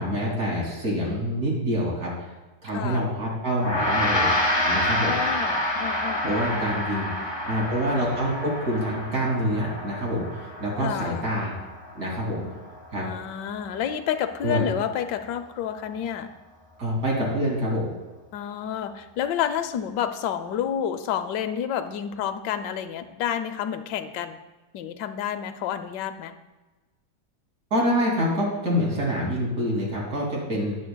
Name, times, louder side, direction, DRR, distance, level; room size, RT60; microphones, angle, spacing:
voice 1, 0.0-2.1 2.6-4.3 4.6-5.1 6.2-7.1 7.5-11.5 11.9-12.4 12.9-13.1 14.4-14.7 16.8-17.9 27.7-30.8, equal, 50° right, -3 dB, 3.0 m, -26 dB
voice 2, 2.7-3.0 5.0-6.8 10.8-11.2 13.0-16.3 18.3-24.4 24.7-26.4, left 9 dB, 75° left, 8 dB, 1.2 m, -30 dB
Gong, 3.6-13.1, left 1 dB, 30° left, 0.4 m, -28 dB
13.0 x 9.3 x 2.2 m, 1.2 s
omnidirectional pair, 2.0 m